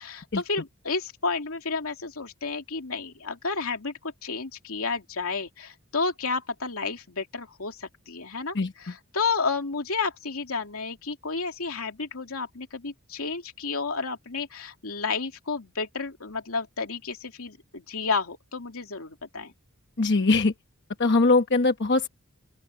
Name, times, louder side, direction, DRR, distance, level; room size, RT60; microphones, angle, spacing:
voice 1, 0.0-19.5, left 4 dB, 85° left, 2.8 m, -31 dB
voice 2, 20.0-20.5 21.0-22.1, left 3 dB, 55° left, 1.1 m, -21 dB
open air
head